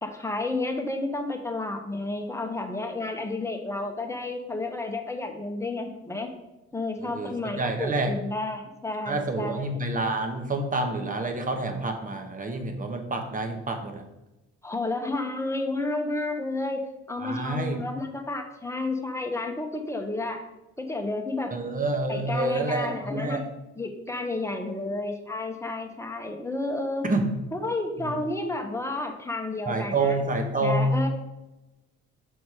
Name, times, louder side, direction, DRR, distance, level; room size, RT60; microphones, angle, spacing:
voice 1, 0.0-6.3 6.7-9.8 14.6-16.8 17.1-20.4 20.8-21.5 22.1-23.4 23.8-27.0 27.5-30.2 30.6-31.1, left 2 dB, 10° left, 3 dB, 1.0 m, -31 dB
voice 2, 7.0-8.1 9.1-14.0 17.2-17.8 21.5-23.4 27.0-27.3 28.0-28.2 29.7-31.1, right 2 dB, 25° right, 5 dB, 1.1 m, -28 dB
6.3 x 4.0 x 4.7 m, 0.99 s
cardioid pair, 90°, 30 cm